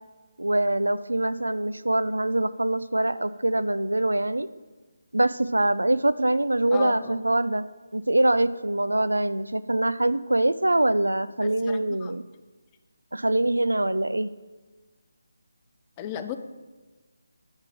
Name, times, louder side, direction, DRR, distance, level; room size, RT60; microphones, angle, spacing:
voice 1, 0.4-4.5 5.1-7.6 7.9-12.2 13.1-14.3, right 1 dB, 90° right, 15 dB, 0.3 m, -24 dB
voice 2, 6.7-7.2 11.4-12.1 16.0-16.4, left 9 dB, 20° left, 8 dB, 0.3 m, -35 dB
6.5 x 3.5 x 5.9 m, 1.3 s
figure-of-eight pair, 155°, 0 cm